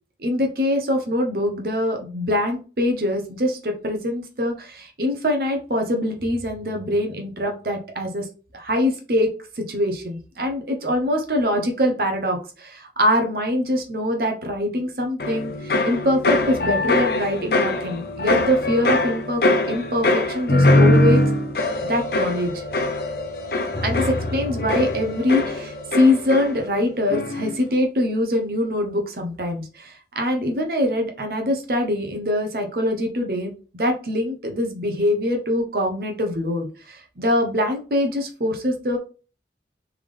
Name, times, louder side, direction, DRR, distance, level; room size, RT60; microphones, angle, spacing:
voice 1, 0.2-8.2 8.5-19.4 19.7-21.2 21.9-22.6 23.8-39.0, left 1 dB, 55° right, 3 dB, 0.8 m, -23 dB
sound 1, 15.2-26.8 27.1-27.6, left 2 dB, 60° left, 0.6 m, -22 dB
3.6 x 3.4 x 3.3 m, 0.36 s
head